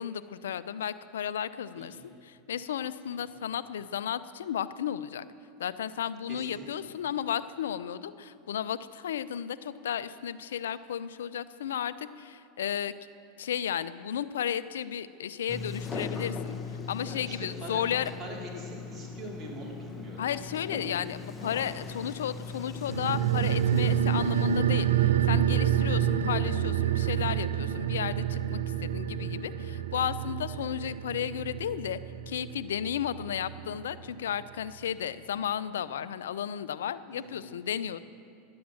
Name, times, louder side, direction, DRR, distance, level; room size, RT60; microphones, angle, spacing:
voice 1, 0.0-2.0 2.2-5.3 5.6-12.9 13.4-18.1 20.2-32.0 32.3-38.0, left 9 dB, 90° left, 15 dB, 0.4 m, -33 dB
voice 2, 1.7-2.1 3.0-3.3 6.3-6.6 17.0-17.8 18.2-20.2 37.1-37.5, right 1 dB, 25° right, -4 dB, 3.1 m, -43 dB
Sliding door, 15.5-24.6, left 4 dB, 20° left, 1.0 m, -39 dB
sound 1, 22.9-33.8 34.0-34.1, right 10 dB, 90° right, 0.6 m, -28 dB
11.5 x 8.6 x 7.5 m, 2.5 s
hypercardioid pair, 110°, 0 cm